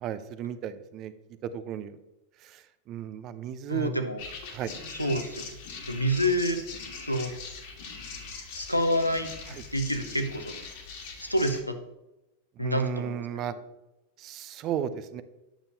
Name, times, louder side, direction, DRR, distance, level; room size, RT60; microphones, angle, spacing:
voice 1, 0.0-1.1 1.5-2.0 2.4-4.0 4.5-4.7 9.5-9.6 12.6-13.5 14.2-15.2, right 9 dB, 35° right, 13 dB, 0.5 m, -34 dB
voice 2, 3.7-4.2 5.0-5.5 5.9-6.6 7.0-7.3 8.5-9.3 9.7-10.6 11.2-11.8 12.6-13.2, equal, 90° left, 7 dB, 0.7 m, -27 dB
sound 1, 4.2-11.6, left 4 dB, 50° left, 1.5 m, -41 dB
8.7 x 6.8 x 2.8 m, 0.95 s
figure-of-eight pair, 90°, 0 cm